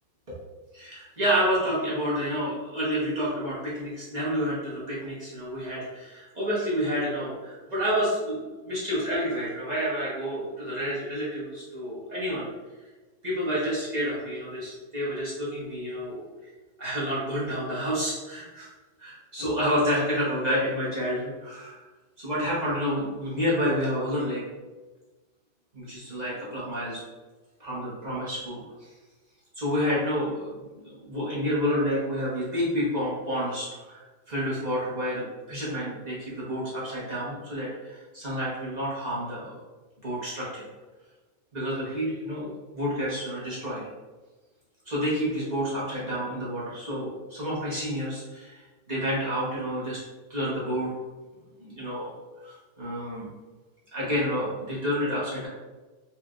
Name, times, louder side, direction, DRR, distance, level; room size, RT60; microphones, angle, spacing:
voice 1, 0.7-12.5 13.2-16.5 16.8-18.7 19.0-21.8 22.2-24.4 25.7-27.0 27.6-28.9 29.5-30.6 30.8-39.5 40.0-40.6 41.5-43.9 44.9-50.0 50.3-50.9 51.6-52.1 52.4-53.3 53.9-55.5, equal, 40° right, -9 dB, 0.6 m, -29 dB
4.3 x 3.2 x 2.4 m, 1.2 s
omnidirectional pair, 2.4 m